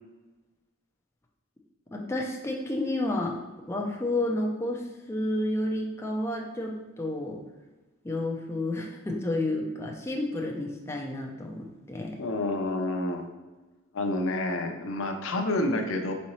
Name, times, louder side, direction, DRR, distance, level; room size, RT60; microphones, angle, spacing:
voice 1, 1.9-3.4 3.7-7.4 8.0-12.1, left 1 dB, 10° left, 0 dB, 0.4 m, -30 dB
voice 2, 12.2-13.3 13.9-16.1, left 2 dB, 70° left, 5 dB, 0.5 m, -28 dB
4.1 x 3.7 x 3.0 m, 1.2 s
head